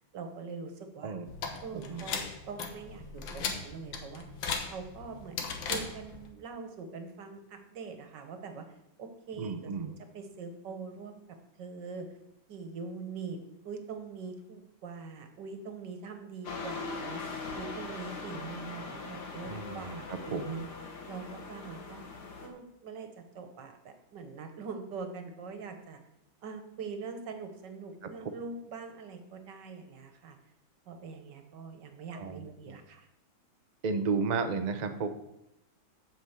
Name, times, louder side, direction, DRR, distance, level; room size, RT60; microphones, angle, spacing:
voice 1, 0.1-1.1 1.6-4.3 4.6-8.6 9.0-11.2 11.6-12.1 12.5-13.4 13.6-17.2 17.5-20.6 21.1-22.0 22.4-23.1 23.3-26.0 26.4-30.4 30.9-33.1, right 5 dB, 65° right, 6 dB, 1.7 m, -43 dB
sound 1, 1.3-6.3, left 5 dB, 80° left, 1.9 m, -38 dB
voice 2, 1.7-2.1 9.4-9.9 19.5-20.7 32.1-32.8 33.8-35.1, right 4 dB, 85° right, 7 dB, 0.3 m, -33 dB
sound 2, 16.4-22.5, left 4 dB, 60° left, 1.9 m, -41 dB
7.9 x 6.1 x 7.2 m, 0.83 s
omnidirectional pair, 2.1 m